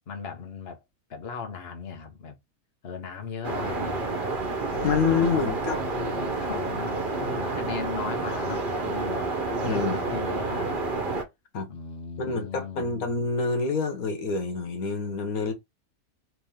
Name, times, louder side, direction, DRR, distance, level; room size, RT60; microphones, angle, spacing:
voice 1, 0.1-0.8 1.1-2.4 2.8-4.1 4.7-9.3 9.5-10.8 11.7-12.9, left 6 dB, 45° left, 1.3 m, -37 dB
sound 1, 3.4-11.2, right 3 dB, 40° right, 1.2 m, -29 dB
voice 2, 4.8-5.8 9.6-10.0 11.5-11.7 12.2-15.5, left 4 dB, 85° left, 1.6 m, -27 dB
4.7 x 3.1 x 3.6 m
omnidirectional pair, 1.5 m